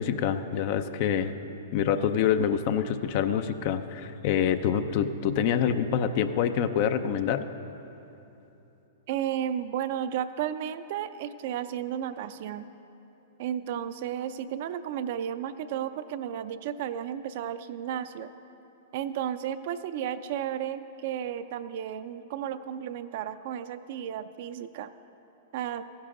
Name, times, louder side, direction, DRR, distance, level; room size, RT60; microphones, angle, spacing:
voice 1, 0.0-1.3 1.7-7.5, left 8 dB, 50° left, 10 dB, 0.5 m, -26 dB
voice 2, 9.1-12.7 13.4-18.3 18.9-24.9 25.5-25.8, right 10 dB, 55° right, 12 dB, 0.4 m, -33 dB
15.0 x 10.0 x 3.8 m, 3.0 s
hypercardioid pair, 115°, 0 cm